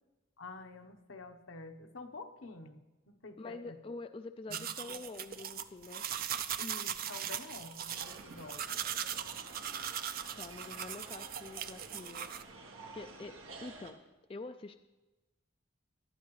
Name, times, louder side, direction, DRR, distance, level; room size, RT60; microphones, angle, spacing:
voice 1, 0.4-3.8 4.5-5.0 6.6-8.7, left 3 dB, 75° left, 6 dB, 1.0 m, -49 dB
voice 2, 3.4-6.0 10.4-12.3 12.9-14.0 14.3-14.7, left 3 dB, 25° left, 8 dB, 0.3 m, -46 dB
sound 1, 4.5-12.4, right 9 dB, 45° right, 0.5 m, -39 dB
sound 2, 7.9-13.9, right 3 dB, 90° right, 1.7 m, -51 dB
18.5 x 12.5 x 3.2 m, 1.1 s
head